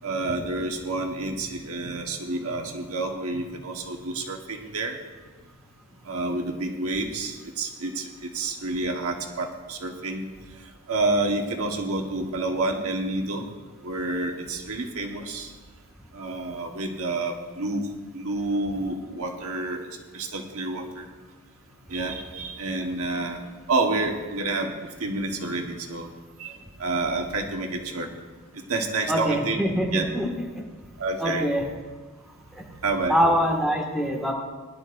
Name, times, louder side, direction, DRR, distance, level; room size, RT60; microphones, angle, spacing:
voice 1, 0.0-5.0 6.0-10.3 10.6-13.5 13.8-15.5 16.1-17.9 18.1-19.9 20.1-21.1 21.9-23.4 23.7-26.1 26.4-28.1 28.5-29.6 29.9-30.1 31.0-31.5 32.8-33.2, right 2 dB, 75° right, 2 dB, 1.4 m, -29 dB
voice 2, 29.1-30.6 31.2-31.6 32.6-32.7 33.1-34.3, equal, ahead, -2 dB, 1.8 m, -24 dB
20.5 x 11.5 x 2.6 m, 1.3 s
head